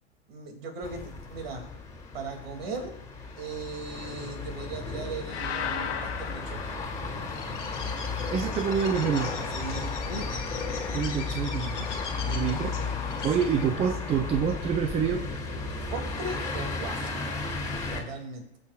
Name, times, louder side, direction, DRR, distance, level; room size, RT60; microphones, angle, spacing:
voice 1, 0.3-1.7 2.1-3.0 3.4-6.7 9.5-10.4 12.1-12.9 15.9-17.1 17.9-18.4, right 3 dB, 55° right, 3 dB, 2.6 m, -38 dB
sound 1, 0.8-18.0, left 3 dB, 10° left, 2.3 m, -34 dB
sound 2, 5.3-7.6, left 8 dB, 70° left, 1.4 m, -35 dB
Bird, 7.2-13.8, left 5 dB, 90° left, 1.8 m, -39 dB
voice 2, 8.3-9.3 10.9-11.8 12.3-12.7 13.2-15.3, right 7 dB, 20° right, 7 dB, 0.5 m, -27 dB
21.5 x 7.2 x 2.4 m, 0.85 s
hypercardioid pair, 105°, 35 cm